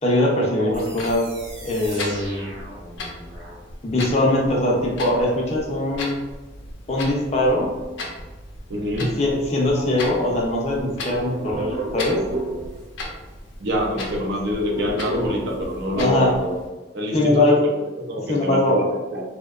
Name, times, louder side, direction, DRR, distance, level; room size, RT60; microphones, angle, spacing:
voice 1, 0.0-1.3 1.6-2.5 3.8-6.2 6.9-7.7 9.2-12.2 15.9-16.3 17.1-17.6 18.3-18.8, left 1 dB, 35° left, -2 dB, 0.4 m, -21 dB
Clock, 0.7-16.7, left 2 dB, 90° left, 0.5 m, -37 dB
sound 1, 0.7-3.6, right 1 dB, 90° right, 0.8 m, -40 dB
voice 2, 8.7-9.2 13.6-16.6 16.9-17.5 18.1-19.2, equal, 60° right, -1 dB, 0.5 m, -25 dB
sound 2, 9.1-10.2 10.5-13.1 13.4-13.5 13.7-16.2, right 2 dB, 35° right, 0.8 m, -32 dB
2.6 x 2.1 x 2.3 m, 1.2 s
head